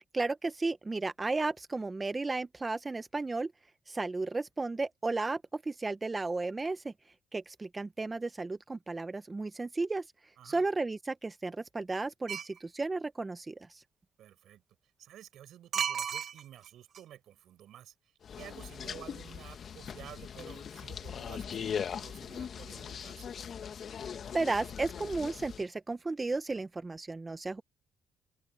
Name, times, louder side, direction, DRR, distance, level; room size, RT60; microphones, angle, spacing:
voice 1, 0.1-3.5 3.9-6.9 7.3-10.1 10.4-13.8 24.3-27.6, right 3 dB, 25° right, 0.8 m, -34 dB
sound 1, 12.3-12.6 15.7-16.7 16.9-17.0, right 8 dB, 60° right, 1.0 m, -33 dB
voice 2, 14.2-14.6 15.0-23.3, right 11 dB, 75° right, 5.7 m, -52 dB
sound 2, 18.2-25.6, left 7 dB, 55° left, 1.3 m, -40 dB
open air
cardioid pair, 90°, 0 cm